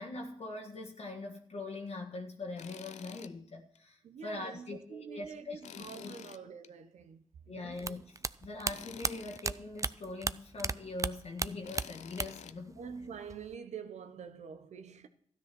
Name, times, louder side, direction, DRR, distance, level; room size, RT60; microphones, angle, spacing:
voice 1, 0.0-6.1 7.4-12.8, left 2 dB, 60° left, 1.5 m, -42 dB
Tools, 2.6-3.3 3.7-3.8 5.6-6.7 8.7-9.4 11.6-12.6, left 9 dB, 75° left, 0.5 m, -49 dB
voice 2, 4.0-7.8 12.8-15.1, right 6 dB, 75° right, 1.0 m, -46 dB
sound 1, 7.8-10.7 11.0-12.5 12.8-13.5, right 3 dB, 25° right, 0.5 m, -35 dB
13.0 x 9.9 x 6.1 m
supercardioid pair, 45°, 12 cm